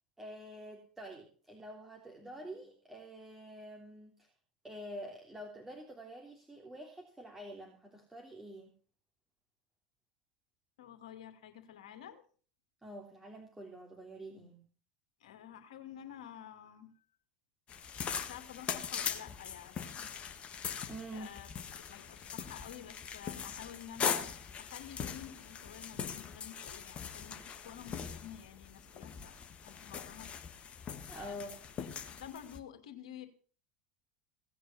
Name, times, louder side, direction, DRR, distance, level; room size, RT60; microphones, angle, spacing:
voice 1, 0.2-4.3 4.6-8.7 12.8-14.6 20.9-21.3 31.1-31.6, equal, 10° right, 1 dB, 3.1 m, -47 dB
voice 2, 10.8-12.2 15.2-17.0 17.8-17.9 18.2-20.1 21.1-21.5 21.9-29.4 29.6-30.3 31.1-31.5 31.8-33.3, left 10 dB, 65° left, 7 dB, 2.6 m, -50 dB
sound 1, 17.7-32.6, left 7 dB, 35° left, 1.7 m, -41 dB
17.5 x 9.4 x 5.7 m, 0.41 s
figure-of-eight pair, 75°, 4 cm